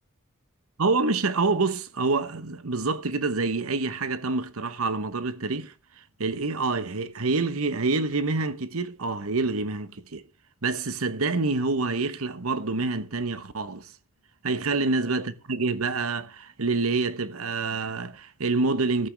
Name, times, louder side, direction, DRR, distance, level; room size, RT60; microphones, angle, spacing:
voice 1, 0.8-5.7 6.2-10.2 10.6-13.9 14.4-19.1, right 3 dB, 85° right, 1.1 m, -27 dB
14.0 x 9.4 x 3.4 m
head